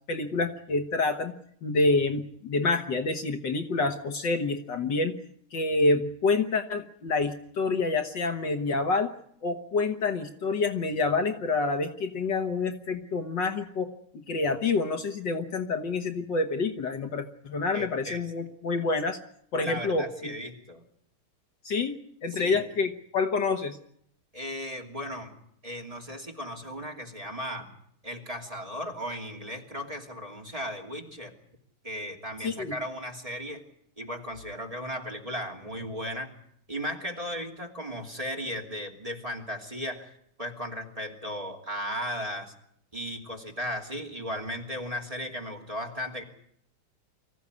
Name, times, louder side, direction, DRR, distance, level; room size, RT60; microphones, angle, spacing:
voice 1, 0.1-1.3 1.6-5.1 5.5-9.1 9.4-13.9 14.1-19.2 19.5-20.3 21.6-23.8 32.4-32.8, left 3 dB, 60° left, 6 dB, 1.9 m, -27 dB
voice 2, 17.7-18.2 19.6-20.8 22.3-22.6 24.3-25.4 25.6-27.7 28.0-31.3 31.8-33.6 34.0-36.3 36.7-40.1 40.4-42.5 42.9-46.2, equal, 15° right, 1 dB, 2.9 m, -36 dB
24.5 x 15.0 x 9.7 m, 0.69 s
omnidirectional pair, 2.4 m